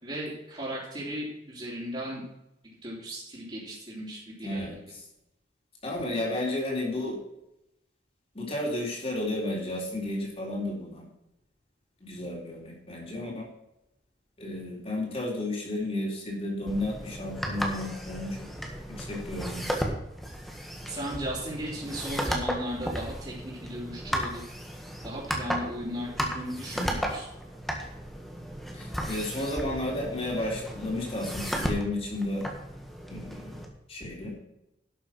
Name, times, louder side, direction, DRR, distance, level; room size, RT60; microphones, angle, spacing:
voice 1, 0.0-2.2 2.6-4.7 20.8-24.4 25.0-27.3, equal, 30° right, -10 dB, 3.7 m, -36 dB
voice 2, 4.4-4.8 5.8-7.2 8.3-11.0 12.0-13.5 14.4-18.5 18.9-19.6 28.7-32.5 33.1-33.6 33.9-34.4, left 1 dB, 35° left, -2 dB, 3.6 m, -32 dB
sound 1, 16.7-33.7, equal, ahead, 1.7 m, -35 dB
12.0 x 7.0 x 6.0 m, 0.88 s
head